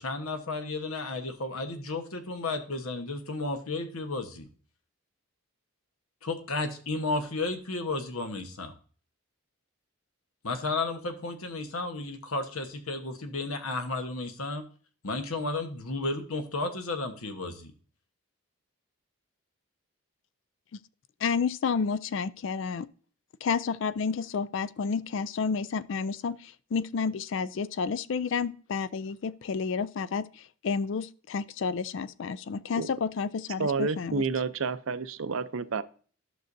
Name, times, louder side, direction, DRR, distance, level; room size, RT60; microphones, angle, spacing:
voice 1, 0.0-4.5 6.2-8.7 10.4-14.6 15.0-17.7, left 2 dB, 80° left, 1.2 m, -33 dB
voice 2, 21.2-22.9 23.4-34.3, left 5 dB, 60° left, 0.4 m, -30 dB
voice 3, 33.6-35.8, right 4 dB, 70° right, 0.5 m, -29 dB
11.5 x 6.3 x 2.6 m
head